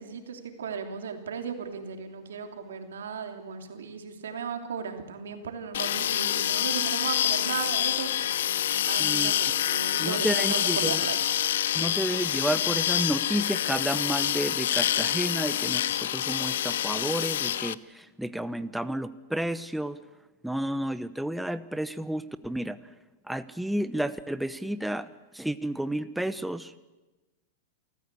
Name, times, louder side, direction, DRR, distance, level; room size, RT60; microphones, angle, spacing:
voice 1, 0.0-8.5 8.9-11.3, right 6 dB, 90° right, 5 dB, 3.0 m, -36 dB
sound 1, 5.7-17.7, left 11 dB, 80° left, 0.7 m, -27 dB
voice 2, 9.0-9.3 10.0-11.0 11.7-20.0 20.4-22.8 23.3-25.1 25.3-26.8, right 1 dB, 5° right, 13 dB, 0.8 m, -31 dB
28.0 x 14.5 x 8.4 m, 1.2 s
hypercardioid pair, 125°, 0 cm